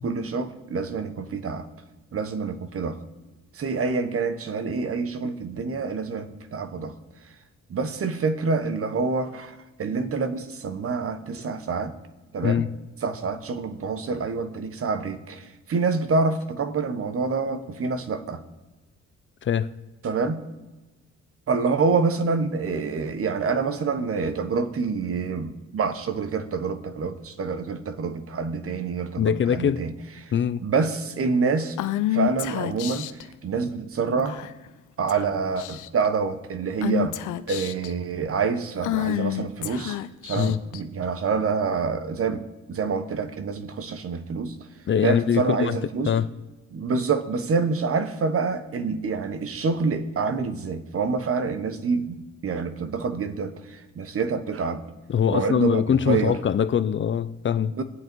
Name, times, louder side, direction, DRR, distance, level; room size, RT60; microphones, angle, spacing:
voice 1, 0.0-1.7 2.1-3.0 3.5-6.9 7.7-11.9 12.3-12.7 13.0-18.4 20.0-20.4 21.5-29.9 30.2-30.3 30.6-31.8 32.1-33.1 33.4-34.4 35.0-37.2 37.5-40.0 40.2-42.4 42.7-44.5 45.0-46.1 46.7-54.8 55.3-56.4 57.7-57.8, right 4 dB, 50° right, 1.2 m, -27 dB
voice 2, 29.2-29.8 30.3-30.6 40.4-40.6 44.9-45.8 46.0-46.3 55.1-57.7, left 8 dB, 40° left, 0.5 m, -23 dB
Female speech woman speaking / Whispering, 31.8-33.2 34.3-34.7 35.1-35.3 35.6-36.1 36.8-37.9 38.8-40.8, left 15 dB, 80° left, 0.7 m, -28 dB
21.0 x 7.9 x 4.6 m
cardioid pair, 90°, 30 cm